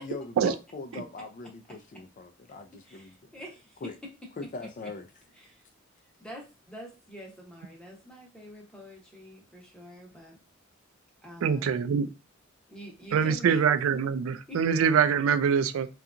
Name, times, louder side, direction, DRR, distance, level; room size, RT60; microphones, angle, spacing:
voice 1, 0.0-3.3 3.8-4.0 4.4-5.1, left 3 dB, 40° left, 0.3 m, -41 dB
voice 2, 2.9-3.8 4.2-4.5 5.4-5.6 6.2-10.4 11.2-11.8 12.7-13.6 14.5-14.6, equal, 5° left, 0.8 m, -46 dB
voice 3, 11.4-12.1 13.1-15.9, right 7 dB, 85° right, 0.3 m, -24 dB
2.7 x 2.4 x 2.4 m
head